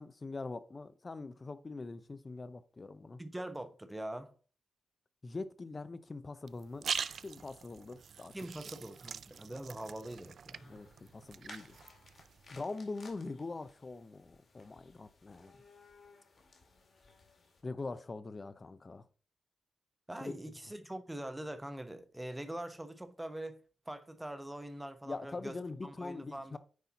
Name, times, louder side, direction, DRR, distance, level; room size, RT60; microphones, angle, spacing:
voice 1, 0.0-3.2 5.2-6.9 7.2-8.3 10.7-11.8 12.5-15.6 17.6-19.1 20.2-20.3 25.1-26.6, left 3 dB, 30° left, 0.6 m, -43 dB
voice 2, 3.2-4.3 8.3-10.7 20.1-23.6 23.9-25.6 25.8-26.6, right 1 dB, 10° right, 0.8 m, -43 dB
sound 1, 6.5-12.6, right 7 dB, 60° right, 0.3 m, -43 dB
sound 2, 10.5-17.6, left 4 dB, 50° left, 2.2 m, -60 dB
9.3 x 4.3 x 4.0 m
wide cardioid pair, 120°, 0 cm